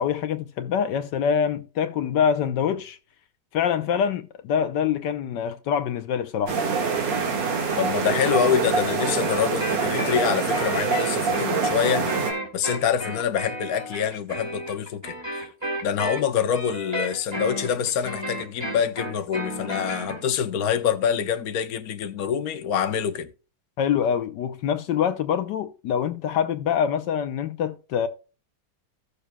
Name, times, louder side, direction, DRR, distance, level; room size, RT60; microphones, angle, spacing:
voice 1, 0.0-3.0 3.5-6.6 23.8-28.1, left 8 dB, 75° left, 1.4 m, -25 dB
sound 1, 6.5-12.3, right 5 dB, 85° right, 2.5 m, -25 dB
voice 2, 7.8-12.1 12.5-15.5 15.8-23.3, left 8 dB, 60° left, 1.3 m, -26 dB
sound 2, 8.3-20.2, equal, 15° right, 2.5 m, -33 dB
16.0 x 6.7 x 2.3 m
omnidirectional pair, 1.9 m